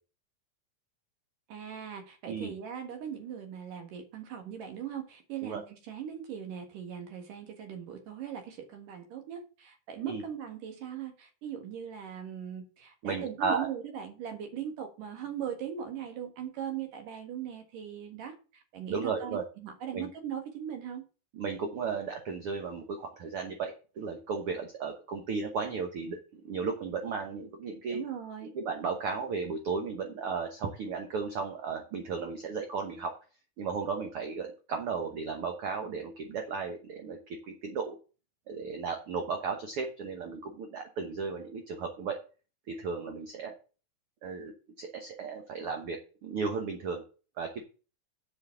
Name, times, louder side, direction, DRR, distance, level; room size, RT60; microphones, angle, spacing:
voice 1, 1.5-21.0 27.9-28.5, right 9 dB, 80° right, 5 dB, 3.2 m, -40 dB
voice 2, 13.0-13.7 18.9-19.4 19.9-20.1 21.3-28.0 28.5-33.1 33.6-38.0 38.5-42.2 42.7-43.5 44.2-44.5 44.8-47.0 47.4-47.6, right 5 dB, 60° right, 4 dB, 1.6 m, -35 dB
7.9 x 5.8 x 6.9 m, 0.35 s
omnidirectional pair, 3.8 m